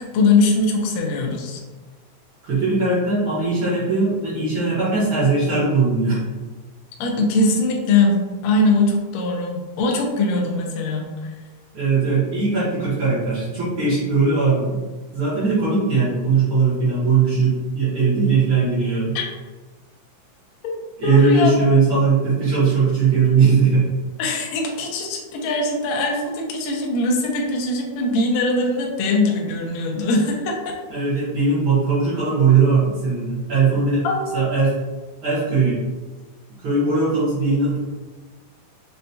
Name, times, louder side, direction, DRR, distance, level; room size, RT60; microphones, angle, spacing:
voice 1, 0.0-1.6 7.0-11.3 19.1-19.2 20.6-20.7 21.0-21.5 24.2-30.7 34.0-34.4, left 2 dB, 90° left, 0 dB, 1.5 m, -21 dB
voice 2, 2.4-6.2 11.7-14.8 15.1-19.1 21.0-23.9 30.9-34.0 34.3-34.8 35.2-35.8 36.6-37.8, right 4 dB, 65° right, -10 dB, 1.3 m, -19 dB
5.8 x 2.2 x 2.7 m, 1.3 s
omnidirectional pair, 4.0 m